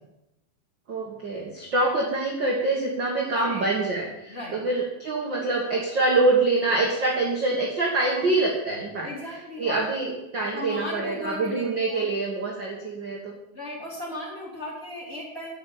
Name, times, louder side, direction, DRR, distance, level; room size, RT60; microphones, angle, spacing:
voice 1, 0.9-9.1 9.6-13.3, right 2 dB, 45° right, -2 dB, 1.6 m, -25 dB
voice 2, 3.3-3.7 4.3-4.6 8.0-8.3 9.0-9.8 10.5-11.6 11.9-12.1 13.5-15.6, left 1 dB, 15° left, -4 dB, 3.7 m, -36 dB
14.0 x 5.9 x 9.4 m, 0.94 s
omnidirectional pair, 4.9 m